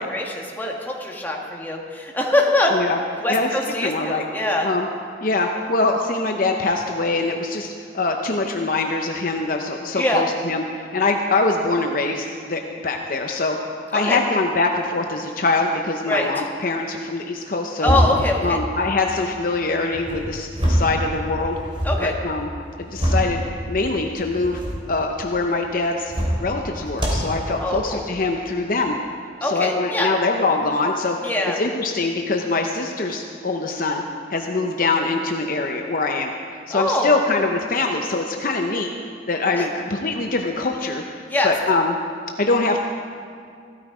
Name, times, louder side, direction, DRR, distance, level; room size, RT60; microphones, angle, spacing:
voice 1, 0.0-2.8 3.2-4.7 9.9-10.2 13.9-14.2 16.1-16.4 17.8-18.6 21.8-22.1 27.6-28.0 29.4-30.1 31.2-31.6 36.7-37.2 39.5-39.7 41.3-41.5, left 1 dB, 10° left, -1 dB, 1.7 m, -23 dB
voice 2, 3.8-4.2 4.6-4.9 5.2-13.6 13.9-17.9 18.4-21.6 22.0-22.5 22.8-24.6 24.9-26.1 26.4-29.0 29.4-31.2 31.6-34.0 34.3-36.3 36.7-38.9 39.3-42.0 42.4-42.8, left 3 dB, 50° left, 3 dB, 0.8 m, -23 dB
sound 1, 17.8-18.3 19.9-21.0 21.3-22.0 22.6-23.3 24.3-24.8 26.0-26.5 26.9-27.3, equal, 30° right, 3.3 m, -23 dB
15.5 x 13.0 x 5.0 m, 2.3 s
head